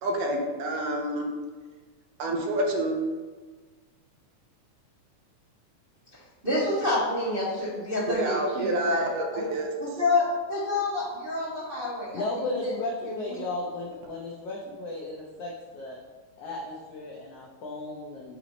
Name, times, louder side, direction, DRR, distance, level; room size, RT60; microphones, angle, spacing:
voice 1, 0.0-1.3 2.2-3.0 8.1-9.7, right 1 dB, 80° right, 2 dB, 2.2 m, -28 dB
voice 2, 6.4-9.1 9.8-12.2 12.6-12.7 13.0-13.4, left 2 dB, 35° right, -12 dB, 0.9 m, -28 dB
voice 3, 12.1-16.0 16.4-18.4, left 2 dB, 90° left, -2 dB, 1.3 m, -35 dB
8.0 x 3.0 x 5.1 m, 1.4 s
omnidirectional pair, 3.8 m